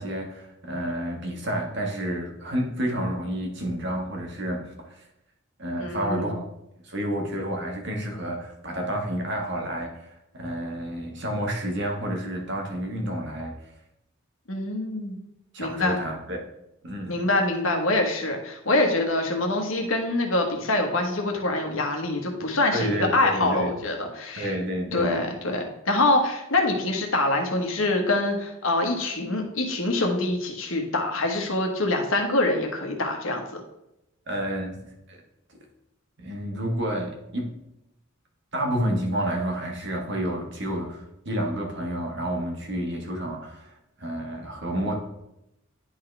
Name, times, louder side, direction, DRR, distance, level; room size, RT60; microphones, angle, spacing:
voice 1, 0.0-5.0 5.6-6.4 6.8-13.6 15.5-16.4 16.8-17.1 22.7-23.7 24.3-25.2 34.3-34.7 35.1-35.2 36.2-37.5 38.5-44.9, right 1 dB, 60° right, 1 dB, 1.5 m, -30 dB
voice 2, 5.8-6.4 14.5-15.2 15.6-16.0 17.1-24.5 24.9-33.6, left 2 dB, 75° left, 3 dB, 1.3 m, -25 dB
10.5 x 4.1 x 3.3 m, 0.86 s
head